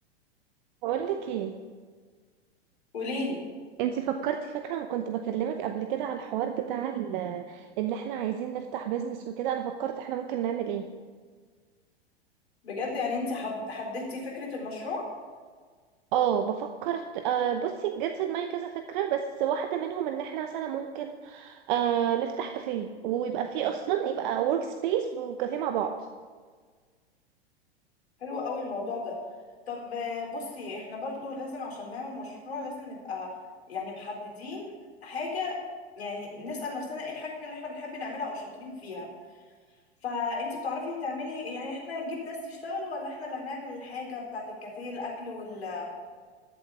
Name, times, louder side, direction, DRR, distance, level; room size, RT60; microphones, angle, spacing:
voice 1, 0.8-1.5 3.8-10.9 16.1-26.0, right 9 dB, 50° right, 7 dB, 0.9 m, -30 dB
voice 2, 2.9-3.4 12.6-15.1 28.2-29.2 29.7-33.3 33.7-34.7 35.0-35.6 36.0-39.1 40.0-45.9, left 3 dB, 75° left, -1 dB, 4.0 m, -35 dB
13.5 x 7.6 x 7.1 m, 1.5 s
figure-of-eight pair, 95°, 32 cm